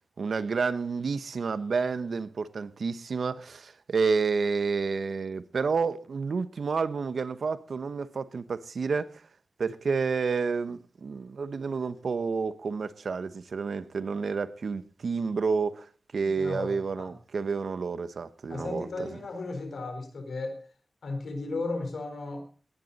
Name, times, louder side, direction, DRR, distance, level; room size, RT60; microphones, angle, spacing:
voice 1, 0.2-9.2 9.6-15.9 16.1-19.1, right 5 dB, 80° right, 0.9 m, -30 dB
voice 2, 16.2-17.1 18.5-20.6 21.0-22.4, left 2 dB, 90° left, 4.1 m, -35 dB
18.5 x 11.0 x 4.1 m
cardioid pair, 60°, 0 cm